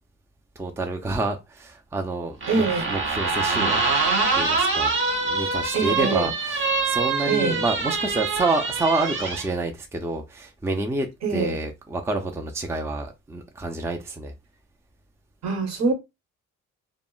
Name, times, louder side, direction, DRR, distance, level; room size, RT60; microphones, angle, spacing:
voice 1, 0.6-3.8 4.4-4.9 5.2-14.3, right 2 dB, 10° right, 0.4 m, -28 dB
sound 1, 2.4-9.5, right 3 dB, 40° right, 0.7 m, -25 dB
voice 2, 2.5-2.9 5.7-6.3 7.3-7.6 11.2-11.6 15.4-15.9, right 4 dB, 60° right, 1.0 m, -24 dB
2.0 x 2.0 x 3.7 m
cardioid pair, 90°, 30 cm